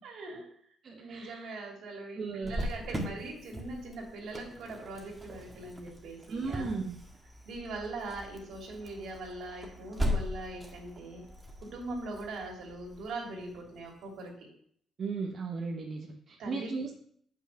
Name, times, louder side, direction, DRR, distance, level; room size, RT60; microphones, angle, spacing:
voice 1, 0.0-0.5 1.0-6.7 7.4-11.2 11.6-14.5 16.4-16.7, right 2 dB, 75° right, -1 dB, 2.8 m, -41 dB
voice 2, 0.8-1.5 2.2-2.5 6.3-7.0 15.0-17.0, right 4 dB, 50° right, 0 dB, 1.1 m, -36 dB
Cricket, 2.4-13.9, equal, 15° right, 1.8 m, -39 dB
7.3 x 5.8 x 5.7 m, 0.64 s
cardioid pair, 90°, 0 cm